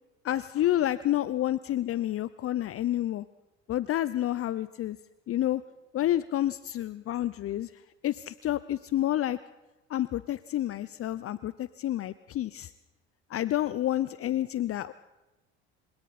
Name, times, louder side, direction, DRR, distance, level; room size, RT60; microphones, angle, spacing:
voice 1, 0.2-3.2 3.7-5.0 5.3-5.6 5.9-7.7 8.0-9.4 9.9-12.7 13.3-14.9, left 13 dB, 40° left, 16 dB, 0.8 m, -29 dB
29.0 x 26.0 x 4.3 m, 1.1 s
hypercardioid pair, 65°, 34 cm